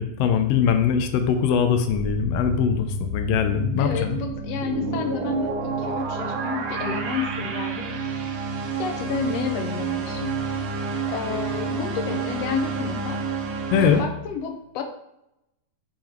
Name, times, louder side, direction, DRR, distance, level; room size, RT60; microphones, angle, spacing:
voice 1, 0.0-4.2 13.7-14.0, left 7 dB, 90° left, 7 dB, 1.4 m, -22 dB
sound 1, 1.9-14.0, right 3 dB, 70° right, 1.7 m, -29 dB
voice 2, 3.8-7.9 8.8-10.6 11.1-13.2 13.8-14.8, left 6 dB, 70° left, 4 dB, 1.7 m, -30 dB
7.0 x 3.7 x 4.5 m, 0.85 s
omnidirectional pair, 3.5 m